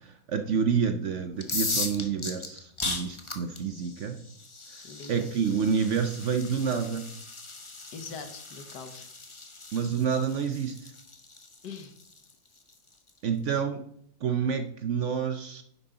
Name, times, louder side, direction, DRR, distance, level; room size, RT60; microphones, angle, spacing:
voice 1, 0.3-4.2 4.7-7.1 9.7-10.9 13.2-13.9 14.2-15.6, right 6 dB, 60° right, 8 dB, 0.8 m, -28 dB
sound 1, 1.3-13.1, left 3 dB, 25° left, 0.8 m, -38 dB
voice 2, 4.8-5.3 7.9-9.1 11.6-12.0, left 5 dB, 85° left, 7 dB, 1.8 m, -42 dB
10.0 x 8.0 x 3.8 m, 0.68 s
omnidirectional pair, 1.8 m